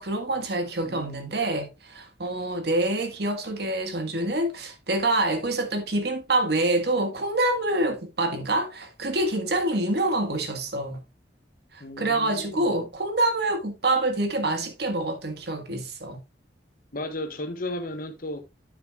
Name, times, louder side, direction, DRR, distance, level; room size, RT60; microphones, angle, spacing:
voice 1, 0.0-11.0 11.7-16.2, right 2 dB, 65° right, 1.8 m, -26 dB
voice 2, 0.8-1.4 11.8-12.8 16.9-18.4, left 1 dB, 55° left, 1.4 m, -35 dB
9.3 x 7.7 x 2.5 m
head